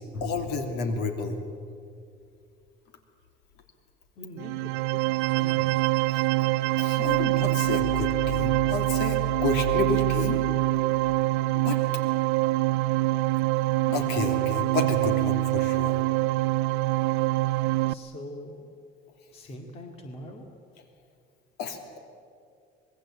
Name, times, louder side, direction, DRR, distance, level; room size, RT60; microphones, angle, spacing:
voice 1, 0.1-1.4 6.1-6.2 6.7-10.4 11.5-11.8 13.8-16.0 21.6-22.0, left 4 dB, 60° left, 6 dB, 3.1 m, -30 dB
voice 2, 4.2-5.0 5.3-5.8 17.9-18.7 19.3-20.5, left 1 dB, 30° left, 3 dB, 2.3 m, -43 dB
sound 1, 4.4-17.9, right 19 dB, 70° right, 0.6 m, -25 dB
26.0 x 20.5 x 8.7 m, 2.3 s
cardioid pair, 170°, 19 cm